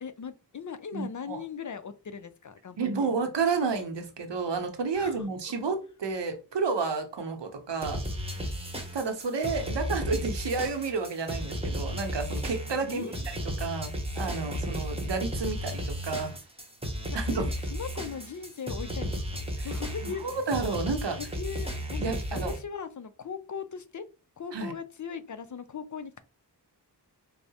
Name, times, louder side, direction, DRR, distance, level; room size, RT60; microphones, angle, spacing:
voice 1, 0.0-3.1 5.0-5.3 12.8-13.2 17.1-20.2 21.2-24.1 24.4-26.2, left 6 dB, 45° left, 0.5 m, -39 dB
voice 2, 0.9-1.4 2.8-8.0 8.9-16.3 17.1-17.5 19.6-19.7 20.0-21.2 22.0-22.5 24.5-24.7, right 4 dB, 90° right, 0.8 m, -31 dB
sound 1, 7.8-22.6, equal, 15° right, 0.9 m, -34 dB
4.6 x 2.0 x 2.7 m
wide cardioid pair, 45°, 41 cm